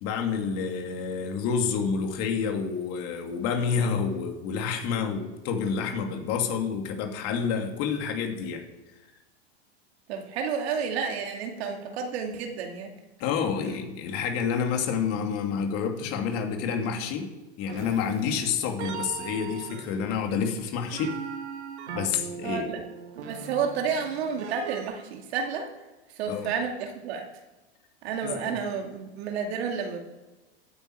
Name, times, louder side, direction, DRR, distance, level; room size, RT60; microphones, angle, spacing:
voice 1, 0.0-8.6 13.2-17.3 17.6-21.2 21.9-22.7 26.3-26.5 28.2-28.6, left 6 dB, 45° left, 4 dB, 2.6 m, -28 dB
voice 2, 10.1-12.9 22.4-22.8 23.1-25.7 26.1-27.2 28.0-30.0, right 6 dB, 70° right, 3 dB, 2.6 m, -31 dB
sound 1, 17.7-24.8, right 7 dB, 85° right, 1.8 m, -40 dB
15.5 x 9.3 x 4.7 m, 1.1 s
hypercardioid pair, 120°, 33 cm